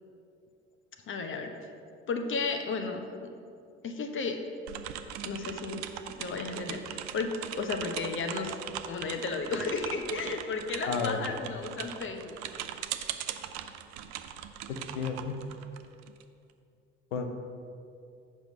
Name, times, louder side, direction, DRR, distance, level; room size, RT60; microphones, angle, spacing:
voice 1, 1.1-1.5 2.1-3.1 3.8-4.4 5.2-5.8 6.2-8.5 8.9-12.4, left 4 dB, 35° left, 5 dB, 0.9 m, -33 dB
sound 1, 4.7-16.2, right 11 dB, 50° right, 0.6 m, -40 dB
voice 2, 10.9-11.3 14.7-15.4 17.1-17.3, left 5 dB, 75° left, 6 dB, 0.8 m, -32 dB
7.5 x 5.4 x 5.4 m, 2.5 s
figure-of-eight pair, 55°, 36 cm